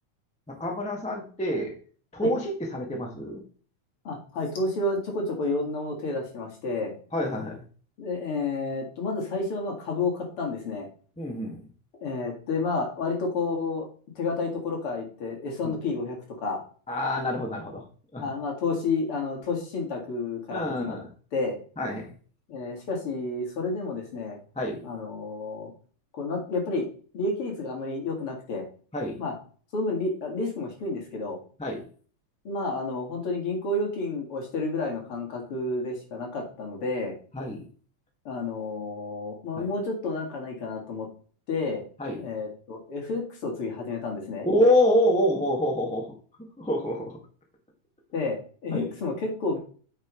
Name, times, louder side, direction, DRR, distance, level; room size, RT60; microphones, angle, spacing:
voice 1, 0.5-1.7 2.1-3.4 7.1-7.6 11.2-11.6 16.9-17.8 18.1-18.2 20.5-21.1 21.8-22.1 24.5-24.8 28.9-29.2 31.6-31.8 37.3-37.6 39.6-39.7 42.0-42.2 44.4-46.1 46.6-47.2 48.7-48.9, left 1 dB, 5° left, 0 dB, 0.9 m, -26 dB
voice 2, 4.0-7.0 8.0-10.9 12.0-13.9 14.2-16.6 18.2-21.0 21.3-21.6 22.5-24.4 24.8-25.7 26.1-26.9 27.1-28.7 29.2-29.4 29.7-31.4 32.4-37.2 38.2-41.1 41.5-41.9 42.2-44.5 48.1-49.6, left 3 dB, 50° left, 0 dB, 2.7 m, -30 dB
9.0 x 6.3 x 3.1 m, 0.42 s
omnidirectional pair, 3.3 m